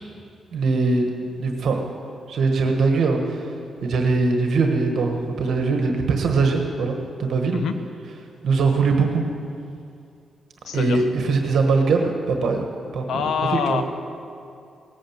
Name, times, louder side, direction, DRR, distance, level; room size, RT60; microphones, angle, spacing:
voice 1, 0.5-1.1 1.4-1.8 2.3-3.5 3.8-7.6 8.4-9.2 10.7-12.6 12.9-13.8, right 4 dB, 70° right, 3 dB, 1.4 m, -21 dB
voice 2, 10.6-11.0 13.1-13.8, left 6 dB, 80° left, 9 dB, 0.9 m, -25 dB
18.0 x 9.1 x 7.3 m, 2.5 s
cardioid pair, 120°, 0 cm